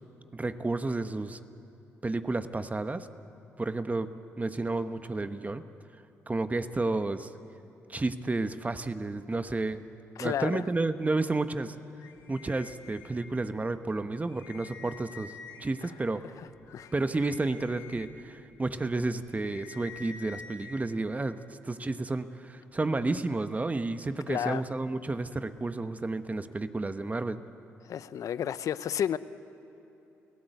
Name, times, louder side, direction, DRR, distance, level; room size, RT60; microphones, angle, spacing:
voice 1, 0.3-1.4 2.0-3.1 3.6-5.6 6.3-7.3 7.9-9.8 10.2-11.8 12.3-15.3 15.6-16.3 16.9-27.4, right 2 dB, 25° right, 10 dB, 1.2 m, -31 dB
voice 2, 10.2-10.6 15.8-15.9 16.4-16.5 16.7-16.9 24.3-24.6 27.8-29.2, left 9 dB, 65° left, 15 dB, 0.7 m, -31 dB
sound 1, 12.0-13.5 13.9-14.0 14.3-15.8 16.4-20.7, left 5 dB, 85° left, 2.1 m, -49 dB
29.5 x 17.0 x 8.1 m, 3.0 s
hypercardioid pair, 50°, 6 cm